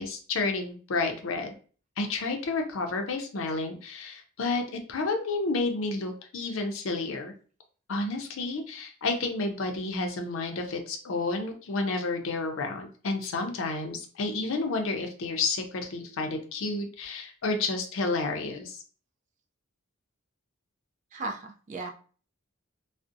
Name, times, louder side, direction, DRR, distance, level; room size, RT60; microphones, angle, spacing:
voice 1, 0.0-1.5 2.0-4.6 4.9-7.3 7.9-18.8, left 3 dB, 75° left, 4 dB, 0.5 m, -30 dB
voice 2, 21.1-21.9, right 3 dB, 35° right, 2 dB, 0.3 m, -36 dB
2.5 x 2.0 x 2.5 m, 0.40 s
head